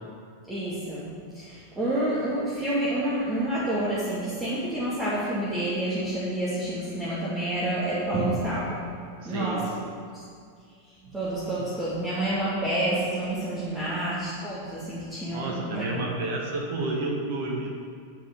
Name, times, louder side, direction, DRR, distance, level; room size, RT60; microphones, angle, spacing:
voice 1, 0.5-1.0 1.3-9.7 10.1-10.2 11.0-16.0, right 1 dB, 10° right, -9 dB, 2.4 m, -29 dB
voice 2, 9.2-10.0 13.8-13.9 15.3-17.7, right 2 dB, 50° right, -1 dB, 1.8 m, -31 dB
11.0 x 5.6 x 7.0 m, 2.2 s
figure-of-eight pair, 90°, 0 cm